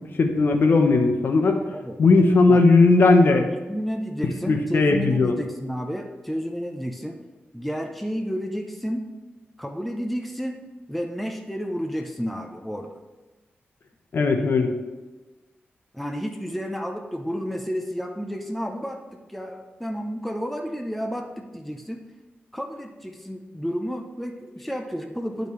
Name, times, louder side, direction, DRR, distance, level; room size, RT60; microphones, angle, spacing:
voice 1, 0.2-1.6 2.0-3.5 4.5-5.3 14.1-14.7, left 3 dB, 60° left, 5 dB, 0.8 m, -17 dB
voice 2, 3.5-7.2 7.5-9.1 9.6-12.9 15.9-22.0 22.5-25.5, equal, ahead, 3 dB, 0.6 m, -31 dB
11.5 x 5.2 x 3.1 m, 1.2 s
wide cardioid pair, 140°, 4 cm